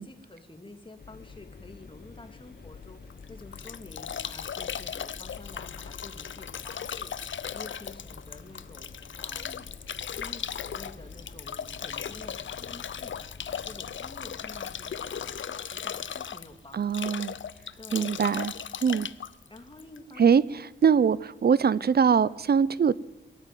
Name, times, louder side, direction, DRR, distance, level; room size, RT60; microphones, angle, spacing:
voice 1, 0.0-9.8 10.1-18.2 18.9-19.0 19.5-20.9, left 2 dB, 25° left, 2.4 m, -49 dB
sound 1, 1.0-15.4, left 5 dB, 50° left, 1.3 m, -49 dB
sound 2, 1.7-19.9, right 1 dB, 5° right, 4.1 m, -58 dB
Bathtub (filling or washing) / Drip / Trickle dribble, 3.1-20.3, left 8 dB, 65° left, 0.6 m, -37 dB
voice 2, 16.7-17.3 17.9-18.5 18.8-19.1 20.2-20.4 20.8-21.2 21.4-22.9, right 7 dB, 50° right, 0.6 m, -22 dB
22.0 x 13.0 x 9.3 m
wide cardioid pair, 125°, 21 cm